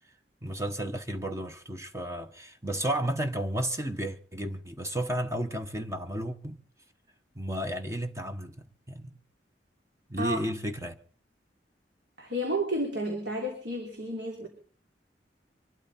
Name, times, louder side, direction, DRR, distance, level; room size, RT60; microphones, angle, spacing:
voice 1, 0.4-6.6 7.3-8.6 8.9-9.1 10.1-11.0, right 1 dB, 15° right, 1.0 m, -32 dB
voice 2, 10.2-10.5 12.2-14.5, right 1 dB, 90° right, 3.2 m, -31 dB
24.5 x 12.5 x 4.2 m
head